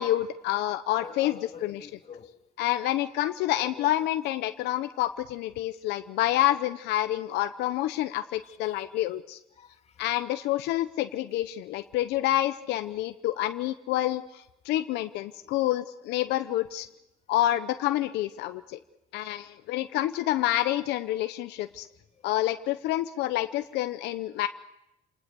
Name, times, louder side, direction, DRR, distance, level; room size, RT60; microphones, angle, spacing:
voice 1, 0.0-1.9 2.6-9.4 10.0-16.9 17.3-18.8 19.1-21.9 22.2-24.5, left 14 dB, 85° left, 10 dB, 0.9 m, -28 dB
voice 2, 1.0-2.4 3.4-3.9 8.4-8.8 9.5-10.0 15.4-15.7 22.1-22.3, left 7 dB, 40° left, 6 dB, 1.9 m, -47 dB
28.5 x 19.5 x 7.0 m, 0.89 s
cardioid pair, 110°, 17 cm